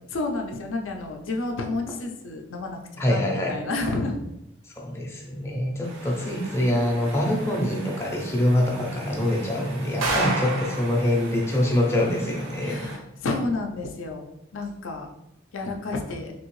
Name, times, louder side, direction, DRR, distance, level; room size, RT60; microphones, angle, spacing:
voice 1, 0.1-4.2 12.6-14.3 14.5-15.1 15.5-16.3, left 2 dB, 80° left, 3 dB, 0.5 m, -30 dB
voice 2, 3.0-3.6 4.8-12.8, left 1 dB, 15° left, -1 dB, 0.4 m, -25 dB
sound 1, 5.8-13.0, right 2 dB, 85° right, 0.6 m, -34 dB
2.9 x 2.7 x 3.0 m, 0.87 s
head